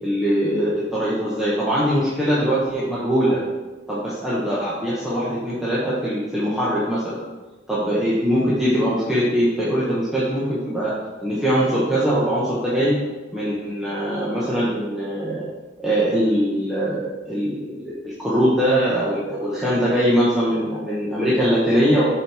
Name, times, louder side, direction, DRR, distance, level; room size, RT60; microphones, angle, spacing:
voice 1, 0.0-3.4 3.9-7.2 7.7-10.9 11.2-13.0 13.3-15.4 15.8-22.1, equal, ahead, -9 dB, 1.4 m, -22 dB
12.5 x 4.6 x 3.6 m, 1.2 s
head